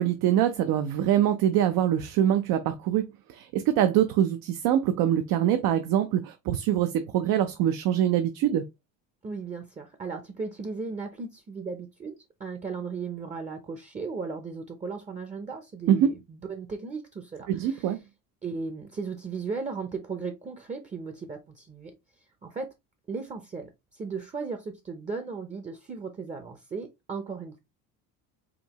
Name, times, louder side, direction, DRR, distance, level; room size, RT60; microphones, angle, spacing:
voice 1, 0.0-8.6 15.9-16.1 17.5-18.0, right 10 dB, 70° right, 0.6 m, -24 dB
voice 2, 9.2-17.9 18.4-21.9 22.4-22.7 23.1-27.6, right 4 dB, 20° right, 0.6 m, -36 dB
5.1 x 2.8 x 2.9 m
cardioid pair, 125°, 36 cm